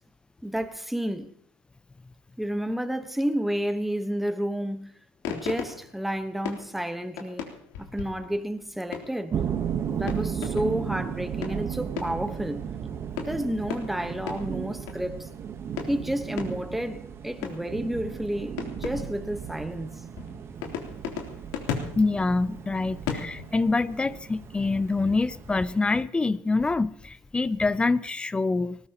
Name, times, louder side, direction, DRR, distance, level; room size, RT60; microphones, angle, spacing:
voice 1, 0.4-1.3 2.4-4.9 5.3-7.5 7.8-9.4 9.9-12.6 13.2-15.3 15.9-19.9, equal, ahead, 1.2 m, -30 dB
sound 1, 5.2-9.4 9.9-10.9 11.3-12.5 13.2-15.2 15.8-17.0 17.4-17.9 18.6-19.6 20.2-23.8, left 7 dB, 85° left, 3.4 m, -37 dB
sound 2, 9.3-26.0, right 8 dB, 35° right, 1.2 m, -35 dB
voice 2, 22.0-28.8, left 3 dB, 15° left, 0.5 m, -25 dB
20.0 x 19.5 x 3.0 m
cardioid pair, 125°, 7 cm